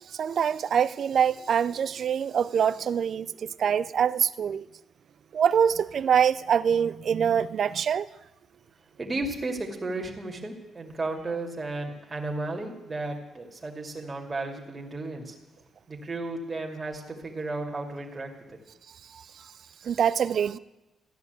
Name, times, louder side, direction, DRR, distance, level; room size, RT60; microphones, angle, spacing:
voice 1, 0.2-4.7 5.3-8.1 19.8-20.6, right 8 dB, 55° right, 0.6 m, -24 dB
voice 2, 9.0-15.3 15.9-18.6, right 2 dB, 25° right, 2.5 m, -34 dB
14.0 x 10.5 x 8.2 m
cardioid pair, 90°, 0 cm